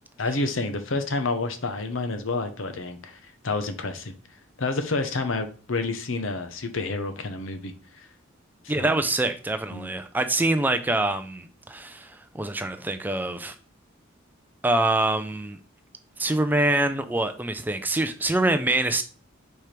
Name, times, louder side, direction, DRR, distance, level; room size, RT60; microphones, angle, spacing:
voice 1, 0.2-3.2 3.4-4.1 4.6-8.1 8.8-9.0 9.7-9.9, left 3 dB, 70° left, 0.8 m, -29 dB
voice 2, 8.7-13.6 14.6-15.6 16.2-19.0, right 2 dB, 10° right, 0.4 m, -25 dB
4.5 x 4.4 x 5.1 m
head